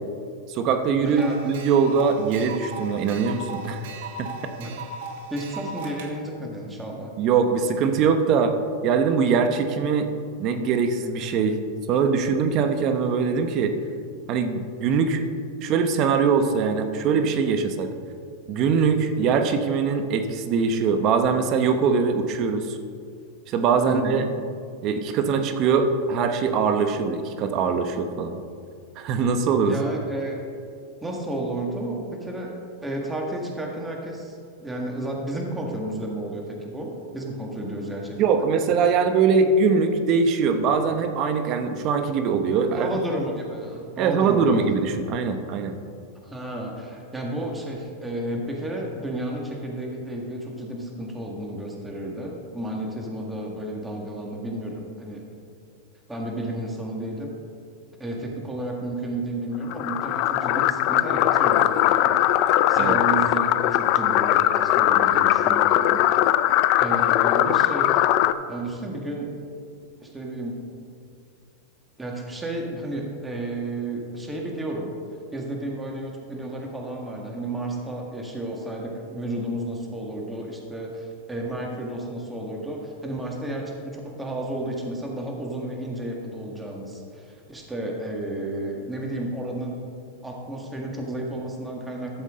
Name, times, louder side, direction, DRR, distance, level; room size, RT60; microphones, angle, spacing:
voice 1, 0.5-3.9 4.2-4.5 7.2-8.5 8.8-10.1 10.4-11.6 11.9-13.7 14.3-15.2 15.6-17.9 18.5-22.8 23.5-24.2 24.8-28.4 29.0-29.8 38.2-42.9 44.0-45.7 62.7-63.0, right 5 dB, 45° right, 7 dB, 0.9 m, -22 dB
voice 2, 1.0-1.5 4.6-4.8 5.3-7.1 23.9-24.3 29.7-30.4 31.0-38.5 42.7-44.6 46.2-55.2 56.1-57.4 58.0-62.2 62.7-66.0 66.8-68.0 68.5-69.3 70.0-70.6 72.0-74.9 75.3-89.8 90.2-92.2, right 1 dB, 10° right, 0 dB, 1.8 m, -32 dB
sound 1, 1.1-6.1, right 3 dB, 65° right, 1.2 m, -37 dB
sound 2, 59.7-68.3, left 13 dB, 50° left, 0.4 m, -20 dB
12.5 x 7.3 x 3.8 m, 2.3 s
hypercardioid pair, 115°, 0 cm